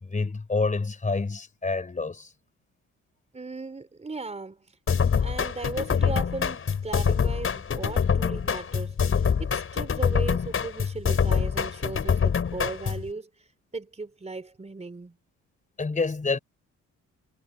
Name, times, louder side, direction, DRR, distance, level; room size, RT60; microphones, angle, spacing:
voice 1, 0.0-2.3 15.8-16.4, left 3 dB, 25° left, 4.0 m, -28 dB
voice 2, 3.3-4.8 5.2-15.2, right 3 dB, 20° right, 3.7 m, -37 dB
sound 1, 4.9-13.1, left 6 dB, 45° left, 5.4 m, -25 dB
cardioid pair, 90°, 30 cm